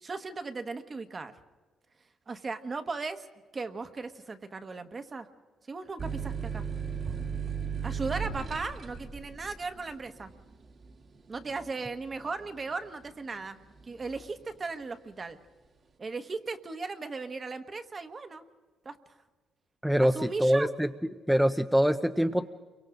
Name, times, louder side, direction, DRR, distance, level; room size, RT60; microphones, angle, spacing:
voice 1, 0.0-1.3 2.3-3.3 3.5-5.3 5.7-6.6 7.8-10.3 11.3-13.6 13.9-15.4 16.0-18.4 18.8-19.0 20.0-20.7, right 4 dB, 35° right, 8 dB, 1.3 m, -37 dB
sound 1, 6.0-13.3 13.7-14.4, right 6 dB, 50° right, 1.7 m, -36 dB
voice 2, 19.8-20.9 21.3-22.5, equal, ahead, 6 dB, 0.7 m, -24 dB
28.5 x 24.0 x 3.8 m, 1.4 s
cardioid pair, 90°, 0 cm